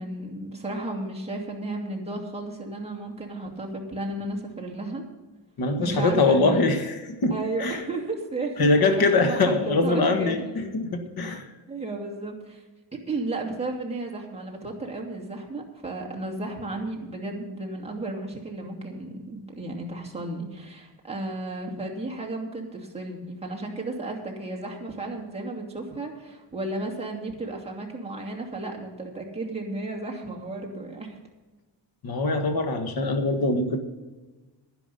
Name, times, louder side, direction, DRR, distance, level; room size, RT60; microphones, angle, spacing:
voice 1, 0.0-5.0 5.8-6.6 7.3-10.7 11.3-11.4 11.7-12.6 12.9-31.2, right 2 dB, 15° right, 0 dB, 2.4 m, -33 dB
voice 2, 5.6-7.8 8.6-11.5 32.0-33.8, left 3 dB, 50° left, 6 dB, 1.7 m, -23 dB
11.0 x 11.0 x 5.5 m, 1.2 s
wide cardioid pair, 145°, 46 cm